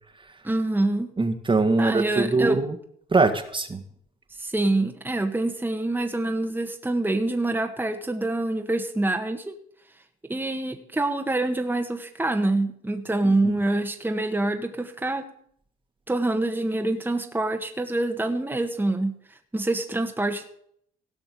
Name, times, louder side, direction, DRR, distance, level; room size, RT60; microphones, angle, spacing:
voice 1, 0.4-1.1 1.8-2.6 4.4-9.5 10.3-15.3 16.1-19.1 19.5-20.4, right 2 dB, 10° right, 3 dB, 1.6 m, -26 dB
voice 2, 1.2-2.8 3.1-3.8 13.2-13.5, right 3 dB, 25° right, 7 dB, 1.8 m, -22 dB
17.0 x 5.8 x 8.4 m, 0.66 s
supercardioid pair, 80°, 20 cm